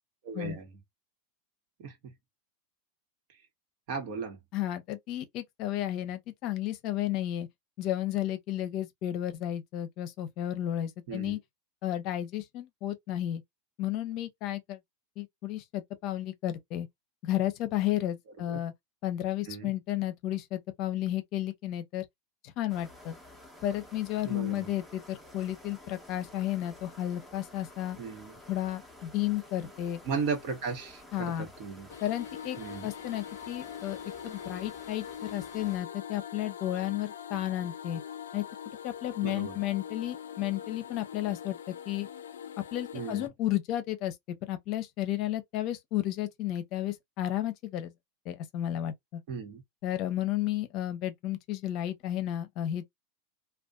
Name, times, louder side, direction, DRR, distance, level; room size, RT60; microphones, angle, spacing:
voice 1, 0.2-0.8 1.8-2.1 3.9-4.4 11.1-11.4 18.5-18.6 19.5-19.7 24.2-24.7 28.0-28.4 30.0-31.9 32.6-32.9 39.2-39.6 42.9-43.3 49.3-49.6, right 5 dB, 60° right, 1.1 m, -36 dB
voice 2, 4.5-7.5 7.8-11.4 11.8-13.4 13.8-14.8 15.2-16.9 17.2-18.7 19.0-22.0 22.4-23.2 23.6-28.0 28.5-30.0 31.1-31.5 32.0-32.6 32.8-34.0 34.2-38.0 38.3-38.4 38.8-42.1 42.6-47.9 48.3-49.2 49.8-52.9, left 13 dB, 50° left, 0.6 m, -32 dB
sound 1, 22.7-35.8, left 1 dB, 5° right, 0.9 m, -52 dB
sound 2, 31.9-43.3, left 8 dB, 90° left, 0.3 m, -43 dB
2.5 x 2.3 x 2.3 m
hypercardioid pair, 110°, 0 cm